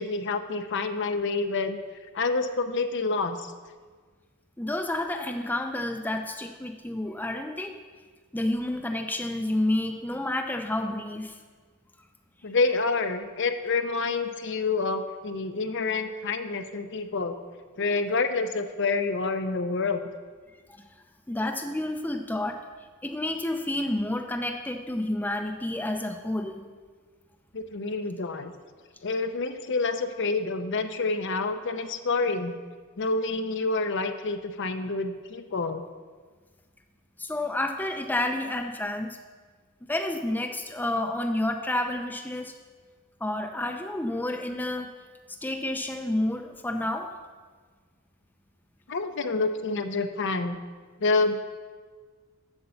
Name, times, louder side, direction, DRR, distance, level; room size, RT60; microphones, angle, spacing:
voice 1, 0.0-1.8 2.1-3.5 12.4-17.4 17.8-20.0 27.5-28.5 29.0-32.5 33.0-35.8 48.9-50.6 51.0-51.3, left 3 dB, 55° left, 8 dB, 0.7 m, -28 dB
voice 2, 4.6-7.8 8.3-11.4 20.8-20.9 21.3-22.6 23.0-26.7 37.2-39.2 39.9-42.5 43.2-44.9 45.4-47.1, left 1 dB, 10° left, 4 dB, 0.5 m, -30 dB
8.0 x 7.7 x 6.9 m, 1.5 s
head